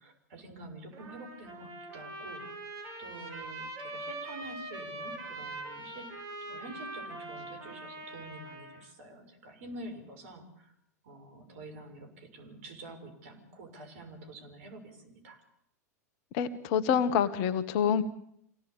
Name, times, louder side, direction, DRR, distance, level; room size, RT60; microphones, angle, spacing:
voice 1, 0.0-6.1 6.5-10.7 11.0-15.4, right 2 dB, 55° right, 6 dB, 6.6 m, -47 dB
Trumpet, 0.9-8.8, right 2 dB, 40° right, 7.6 m, -42 dB
voice 2, 16.3-18.0, left 8 dB, 45° left, 11 dB, 1.5 m, -27 dB
26.5 x 17.0 x 8.6 m, 0.73 s
figure-of-eight pair, 90°, 9 cm